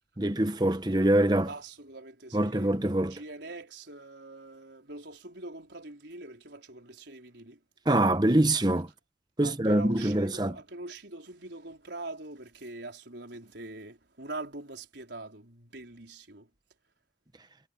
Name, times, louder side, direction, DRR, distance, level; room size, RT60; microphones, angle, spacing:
voice 1, 0.2-1.5 2.3-3.2 7.9-8.9 9.4-10.6, right 1 dB, 25° right, 1.1 m, -24 dB
voice 2, 1.5-7.6 9.4-16.5, right 2 dB, 80° right, 4.4 m, -43 dB
head